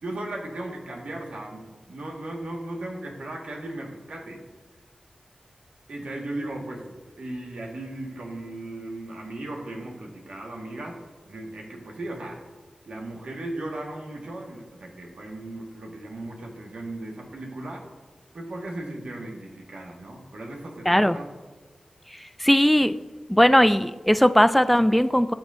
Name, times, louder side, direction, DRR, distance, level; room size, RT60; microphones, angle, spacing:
voice 1, 0.0-4.4 5.9-11.0 11.3-12.4 12.8-17.8 18.3-21.3, right 1 dB, 85° right, 0 dB, 1.6 m, -36 dB
voice 2, 20.9-21.2 22.4-22.9 23.3-25.3, equal, ahead, 11 dB, 0.3 m, -18 dB
18.0 x 6.2 x 2.6 m, 1.3 s
wide cardioid pair, 90°, 2 cm